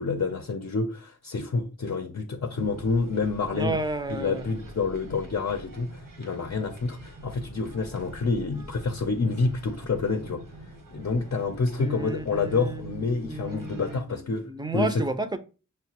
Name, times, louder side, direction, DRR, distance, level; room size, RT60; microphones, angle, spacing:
voice 1, 0.0-3.8 4.1-10.4 10.9-15.0, left 4 dB, 55° left, 0.5 m, -28 dB
sound 1, 2.5-14.0, right 1 dB, 80° right, 1.0 m, -46 dB
voice 2, 3.5-4.5 11.8-15.4, right 3 dB, 15° right, 0.5 m, -32 dB
6.3 x 2.2 x 2.8 m
wide cardioid pair, 60°, 31 cm